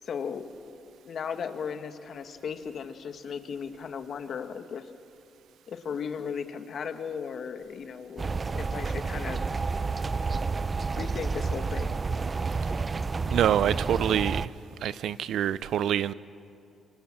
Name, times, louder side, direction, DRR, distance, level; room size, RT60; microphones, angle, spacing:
voice 1, 0.0-0.8 1.0-4.9 5.7-9.4 10.9-12.0, left 6 dB, 55° left, 8 dB, 1.8 m, -36 dB
sound 1, 8.2-14.5, right 4 dB, 30° right, 0.6 m, -30 dB
voice 2, 13.3-14.5 14.8-16.1, right 10 dB, 75° right, 17 dB, 0.7 m, -26 dB
27.0 x 25.5 x 7.5 m, 2.5 s
cardioid pair, 90°, 0 cm